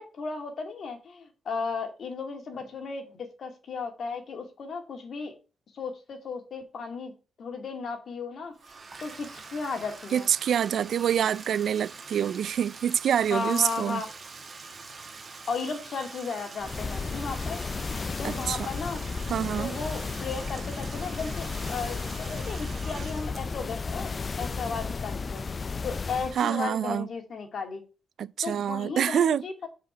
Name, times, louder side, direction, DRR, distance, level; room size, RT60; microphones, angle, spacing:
voice 1, 0.0-5.4 5.7-7.1 7.4-8.5 9.0-10.3 13.3-14.1 15.5-17.6 18.2-19.1 19.6-24.1 24.4-25.5 25.8-27.8 28.4-29.7, left 4 dB, 55° left, 2.3 m, -35 dB
Bathtub (filling or washing), 8.5-25.3, right 4 dB, 35° right, 1.6 m, -45 dB
voice 2, 10.1-14.0 18.2-18.7 19.3-19.7 26.4-27.1 28.2-29.4, right 9 dB, 65° right, 0.3 m, -26 dB
sound 1, 16.6-26.4, left 4 dB, 30° left, 0.3 m, -33 dB
7.6 x 5.1 x 6.1 m
wide cardioid pair, 140°, 0 cm